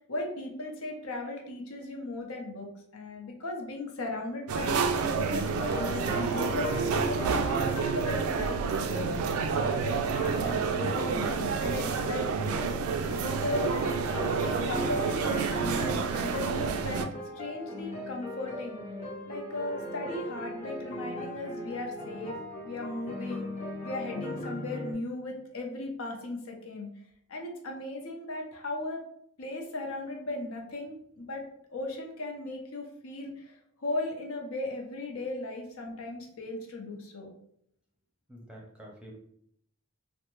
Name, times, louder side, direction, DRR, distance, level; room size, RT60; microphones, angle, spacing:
voice 1, 0.1-12.5 13.1-13.7 14.6-17.1 17.4-18.8 19.3-22.4 22.6-23.5 23.8-26.9 27.3-29.0 29.4-31.4 31.7-37.3, left 2 dB, 80° left, 1 dB, 0.7 m, -37 dB
sound 1, 4.5-17.1, right 5 dB, 85° right, 0.3 m, -29 dB
sound 2, 5.3-24.9, equal, 30° left, 0.7 m, -38 dB
voice 2, 38.3-39.1, equal, 5° right, -2 dB, 0.6 m, -48 dB
3.3 x 2.1 x 3.0 m, 0.70 s
head